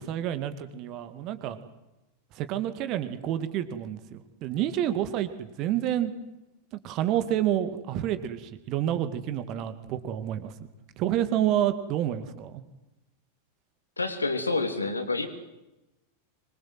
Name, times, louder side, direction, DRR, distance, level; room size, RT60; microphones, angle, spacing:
voice 1, 0.0-1.6 2.3-6.1 6.8-10.5 11.0-12.6, right 11 dB, 40° right, 11 dB, 2.3 m, -29 dB
voice 2, 14.0-15.3, left 3 dB, 80° left, 7 dB, 3.2 m, -28 dB
25.0 x 22.5 x 7.9 m, 0.96 s
figure-of-eight pair, 90°, 0 cm